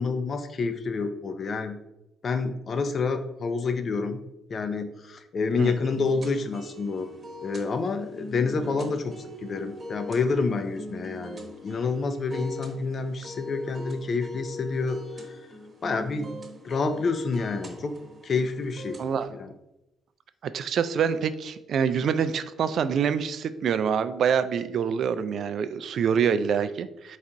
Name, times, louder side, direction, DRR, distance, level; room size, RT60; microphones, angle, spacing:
voice 1, 0.0-1.8 2.2-4.2 4.5-7.1 7.4-9.1 9.4-15.0 15.3-15.4 15.8-16.3 16.6-17.9 18.2-19.0 19.3-19.5, left 4 dB, 45° left, 8 dB, 0.5 m, -28 dB
sound 1, 5.9-19.3, left 1 dB, 40° right, 1.1 m, -42 dB
voice 2, 19.0-19.3 20.4-27.2, right 7 dB, 65° right, 12 dB, 0.3 m, -26 dB
4.1 x 2.5 x 4.5 m, 0.91 s
cardioid pair, 90°, 0 cm